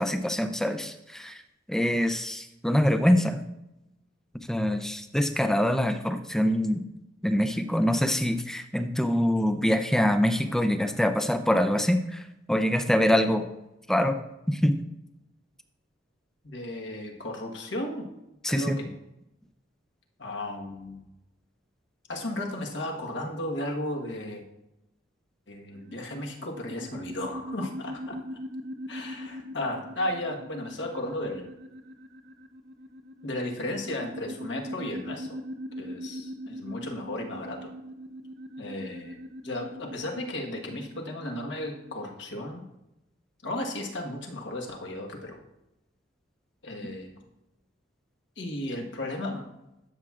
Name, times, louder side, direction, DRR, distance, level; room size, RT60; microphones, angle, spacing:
voice 1, 0.0-1.4 1.7-3.4 4.5-6.8 7.2-13.4 13.9-14.2 14.5-14.8 18.4-18.8, equal, 5° left, 8 dB, 0.4 m, -24 dB
voice 2, 16.4-18.1 18.5-18.9 20.2-21.0 22.1-24.4 25.5-28.2 28.9-31.5 33.2-35.4 35.8-37.7 38.6-39.2 39.4-42.6 43.4-45.4 46.6-47.2 48.4-49.4, left 1 dB, 65° left, 1 dB, 1.3 m, -34 dB
sound 1, 25.7-42.1, equal, 60° right, 0.6 m, -41 dB
12.0 x 7.3 x 2.4 m, 0.91 s
head